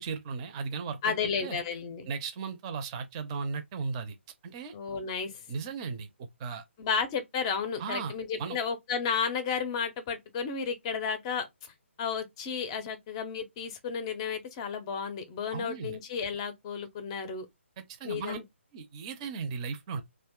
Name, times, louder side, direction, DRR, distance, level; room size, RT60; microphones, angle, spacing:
voice 1, 0.0-1.1 1.4-1.6 2.1-4.2 4.4-4.7 5.5-6.1 6.4-6.6 7.8-8.1 8.4-8.6 15.5-16.0 17.8-18.4 18.7-20.0, right 5 dB, 25° right, 0.6 m, -36 dB
voice 2, 1.0-2.1 4.7-5.4 6.8-11.7 12.0-17.5 18.0-18.4, left 6 dB, 25° left, 0.6 m, -33 dB
2.6 x 2.4 x 3.6 m
figure-of-eight pair, 145°, 7 cm